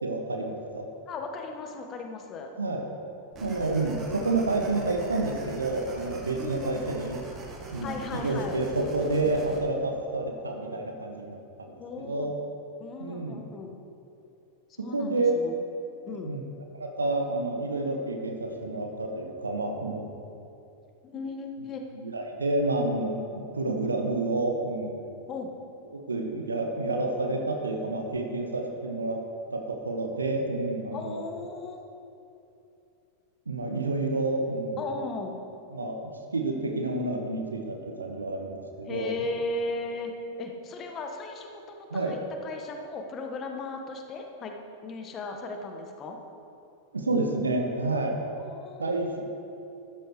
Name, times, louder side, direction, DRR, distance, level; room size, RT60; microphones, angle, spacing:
voice 1, 0.0-0.9 2.6-2.9 3.4-7.2 7.7-12.3 13.0-13.5 14.8-15.3 16.1-16.4 16.8-20.1 21.9-25.0 25.9-29.2 29.5-31.2 33.5-34.8 35.7-39.1 41.9-42.2 46.9-48.2 48.8-49.2, right 2 dB, 75° right, 3 dB, 1.1 m, -29 dB
voice 2, 1.1-2.5 6.4-6.8 7.8-8.6 11.8-12.3 12.8-13.7 14.8-15.6 16.0-16.3 21.0-21.8 25.3-25.5 30.9-31.8 34.8-35.4 38.9-40.1 40.4-44.5 44.8-46.2 48.4-49.0, left 3 dB, 30° left, 3 dB, 1.4 m, -36 dB
sound 1, 3.3-9.6, right 3 dB, 30° right, 2.0 m, -43 dB
13.5 x 13.0 x 3.2 m, 2.7 s
figure-of-eight pair, 90°, 0 cm